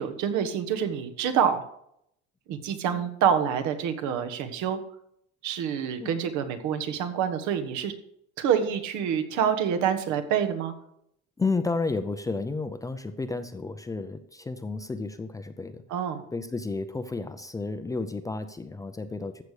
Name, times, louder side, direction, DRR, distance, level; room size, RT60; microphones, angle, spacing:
voice 1, 0.0-1.6 2.5-4.8 5.4-7.9 8.4-10.7 15.9-16.2, right 8 dB, 70° right, 9 dB, 1.5 m, -27 dB
voice 2, 11.4-16.1 16.3-19.4, left 3 dB, 10° left, 9 dB, 0.5 m, -32 dB
14.5 x 6.7 x 5.0 m, 0.73 s
cardioid pair, 150°, 30 cm